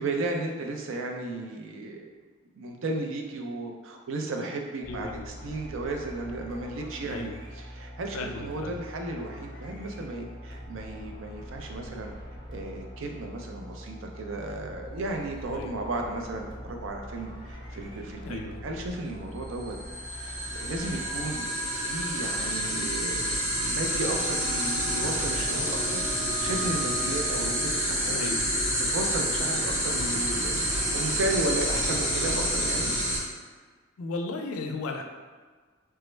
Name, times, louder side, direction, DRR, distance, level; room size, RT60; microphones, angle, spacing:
voice 1, 0.0-2.1 2.5-12.1 12.5-19.8 20.1-21.5 21.8-23.3 23.7-26.0 26.4-28.3 28.8-32.9, right 2 dB, 65° right, 2 dB, 0.4 m, -34 dB
sound 1, 4.8-21.4, equal, 25° left, 0.7 m, -43 dB
voice 2, 4.9-5.3 7.0-7.3 8.1-8.7 15.5-15.7 18.2-18.6 28.1-28.4 34.0-35.0, left 3 dB, 85° left, 3 dB, 0.4 m, -35 dB
sound 2, 19.6-33.2, equal, 85° right, 1.4 m, -28 dB
sound 3, 24.0-32.8, right 6 dB, 10° right, 0.4 m, -44 dB
3.3 x 2.0 x 3.2 m, 1.5 s
head